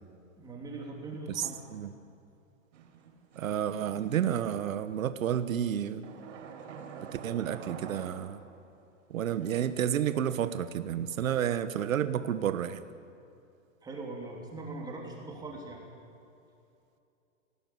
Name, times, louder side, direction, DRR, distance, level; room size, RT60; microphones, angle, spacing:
voice 1, 0.4-1.6 13.8-15.9, right 2 dB, 10° right, -1 dB, 3.1 m, -41 dB
voice 2, 1.3-1.9 3.4-6.0 7.2-8.4 9.1-12.8, right 9 dB, 85° right, 11 dB, 1.4 m, -30 dB
sound 1, 2.7-4.8 6.0-8.7 9.2-10.3, right 6 dB, 65° right, 4.3 m, -48 dB
24.5 x 17.5 x 9.5 m, 2.7 s
hypercardioid pair, 165°, 40 cm